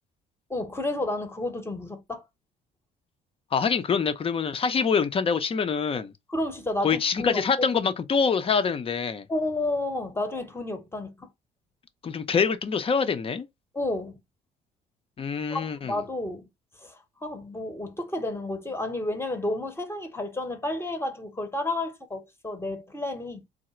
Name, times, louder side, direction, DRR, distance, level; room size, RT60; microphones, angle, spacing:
voice 1, 0.5-2.2 5.9-6.0 6.3-7.4 7.7-7.9 9.3-11.3 13.7-14.2 15.5-16.5 16.8-23.4, left 2 dB, 15° left, 0.9 m, -31 dB
voice 2, 3.5-6.1 6.8-9.3 12.0-13.5 15.2-16.0, left 6 dB, 35° left, 0.6 m, -25 dB
3.8 x 2.1 x 4.3 m
cardioid pair, 110°, 17 cm